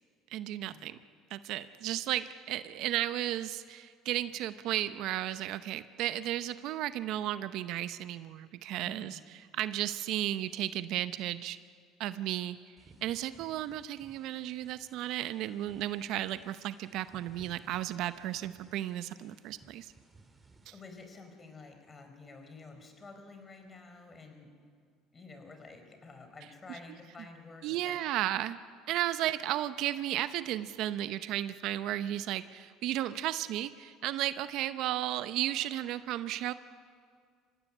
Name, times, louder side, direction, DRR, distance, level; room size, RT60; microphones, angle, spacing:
voice 1, 0.3-1.0 1.3-9.2 9.5-11.6 12.0-12.6 13.0-19.9 27.6-28.6 28.9-36.5, right 13 dB, 65° right, 13 dB, 0.7 m, -34 dB
voice 2, 8.8-9.2 20.7-24.5 25.1-28.0, left 3 dB, 30° left, 6 dB, 4.5 m, -50 dB
sound 1, 12.8-20.7, right 3 dB, 20° right, 2.8 m, -60 dB
25.0 x 16.0 x 9.9 m, 2.1 s
supercardioid pair, 90°, 0 cm